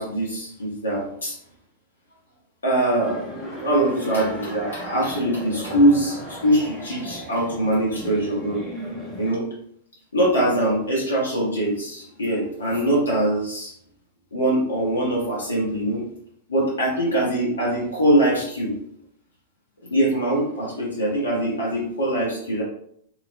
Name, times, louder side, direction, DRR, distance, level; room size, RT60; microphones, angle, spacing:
voice 1, 0.0-1.4 2.6-8.6 9.2-9.5 10.1-13.7 14.3-16.0 16.5-18.8 19.9-22.6, right 1 dB, 70° left, -5 dB, 1.1 m, -22 dB
sound 1, 3.0-9.4, equal, 15° right, 1.0 m, -36 dB
3.1 x 2.9 x 2.5 m, 0.68 s
figure-of-eight pair, 100°, 0 cm